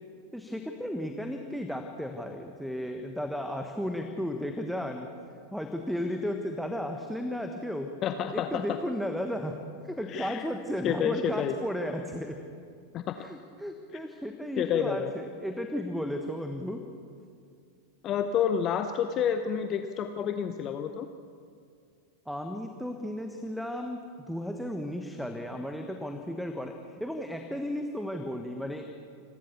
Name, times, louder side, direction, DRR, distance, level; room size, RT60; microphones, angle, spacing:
voice 1, 0.3-5.1 5.5-7.9 8.3-9.6 9.8-12.4 13.2-16.8 22.3-24.0 24.3-28.8, equal, ahead, 6 dB, 1.3 m, -34 dB
voice 2, 8.0-8.8 10.1-10.5 10.8-11.5 12.9-13.2 14.6-15.1 18.0-21.1, left 8 dB, 30° left, 8 dB, 0.9 m, -29 dB
28.5 x 13.0 x 7.0 m, 2.3 s
figure-of-eight pair, 90°, 0 cm